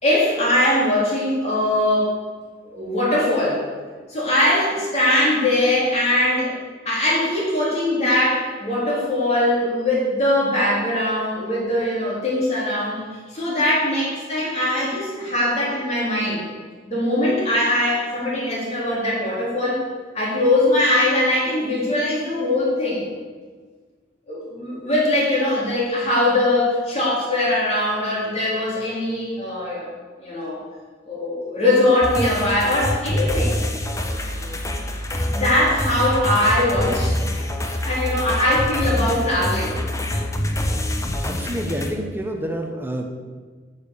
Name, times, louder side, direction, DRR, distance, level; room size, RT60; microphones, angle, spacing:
voice 1, 0.0-2.1 2.7-3.6 4.1-6.5 6.9-13.0 13.3-16.4 16.9-19.8 20.1-23.1 24.3-29.9 30.2-30.6 31.1-33.5 35.1-39.8, left 1 dB, 35° left, -6 dB, 3.9 m, -21 dB
sound 1, 32.0-41.9, left 1 dB, 15° left, 0.8 m, -25 dB
voice 2, 41.2-43.1, right 1 dB, 10° right, 3 dB, 1.2 m, -28 dB
9.3 x 7.6 x 6.7 m, 1.5 s
head